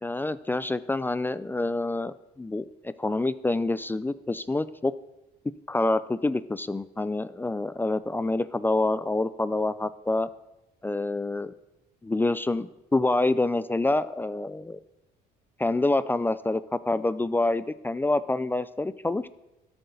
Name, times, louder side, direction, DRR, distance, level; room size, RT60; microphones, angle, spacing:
voice 1, 0.0-4.9 5.7-10.3 10.8-11.5 12.0-14.8 15.6-19.3, left 2 dB, 10° left, 14 dB, 0.4 m, -27 dB
12.0 x 7.7 x 7.1 m, 0.96 s
cardioid pair, 110°, 17 cm